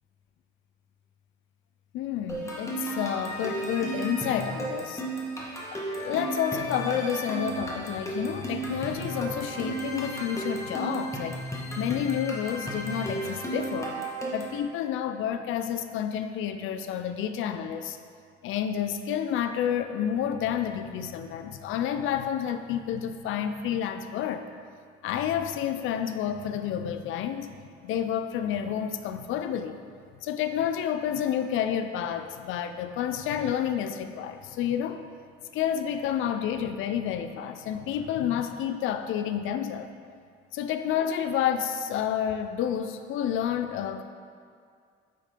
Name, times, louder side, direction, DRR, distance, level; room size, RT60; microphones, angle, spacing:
voice 1, 1.9-5.0 5.7-11.4 11.8-14.0 14.3-18.0 18.4-24.5 25.0-27.6 27.8-29.8 30.2-35.0 35.5-39.9 40.5-44.0, left 9 dB, 85° left, 9 dB, 0.4 m, -30 dB
sound 1, 2.3-14.6, right 2 dB, 15° left, 1.4 m, -34 dB
8.7 x 3.7 x 5.0 m, 2.2 s
cardioid pair, 90°, 20 cm